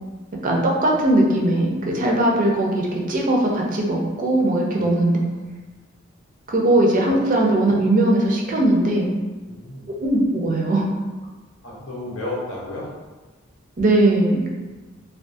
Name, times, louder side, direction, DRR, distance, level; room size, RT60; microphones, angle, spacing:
voice 1, 0.4-5.2 6.5-9.1 10.0-10.9 13.8-14.5, right 1 dB, 40° right, -1 dB, 0.4 m, -19 dB
voice 2, 9.4-9.9 11.6-12.9, left 2 dB, 65° left, -4 dB, 0.7 m, -32 dB
2.3 x 2.3 x 2.5 m, 1.3 s
head